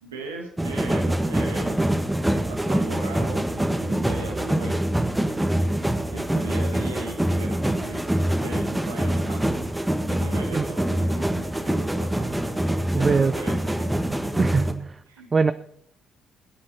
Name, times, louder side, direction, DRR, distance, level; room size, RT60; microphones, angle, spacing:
voice 1, 0.0-1.9 2.3-9.6 10.1-12.6 12.9-14.0 14.4-14.5 15.1-15.3, right 3 dB, 80° right, 1 dB, 1.4 m, -39 dB
sound 1, 0.6-14.7, right 1 dB, 10° right, 1.6 m, -25 dB
voice 2, 12.9-13.3 14.4-15.0 15.3-15.5, right 4 dB, 35° right, 14 dB, 0.4 m, -22 dB
20.0 x 8.7 x 4.4 m, 0.70 s
figure-of-eight pair, 40°, 0 cm